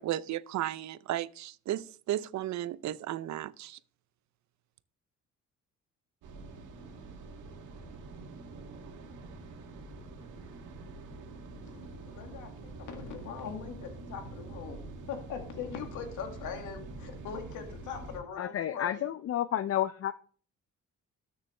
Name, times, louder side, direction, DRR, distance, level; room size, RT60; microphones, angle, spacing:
voice 1, 0.0-3.8, right 13 dB, 65° right, 0.6 m, -34 dB
sound 1, 6.2-18.2, right 3 dB, 85° right, 1.9 m, -45 dB
voice 2, 11.7-19.0, left 7 dB, 85° left, 2.0 m, -41 dB
voice 3, 18.4-20.1, left 11 dB, 50° left, 0.5 m, -31 dB
13.0 x 6.9 x 3.2 m
cardioid pair, 90°, 30 cm